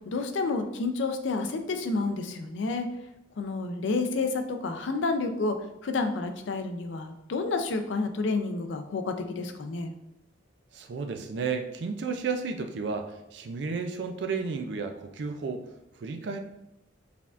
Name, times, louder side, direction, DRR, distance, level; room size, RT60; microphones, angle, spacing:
voice 1, 0.1-2.9 3.4-5.5 5.8-9.9, left 3 dB, 70° left, 6 dB, 0.4 m, -30 dB
voice 2, 10.7-16.4, right 5 dB, 60° right, 6 dB, 0.4 m, -33 dB
4.7 x 3.4 x 2.4 m, 0.87 s
head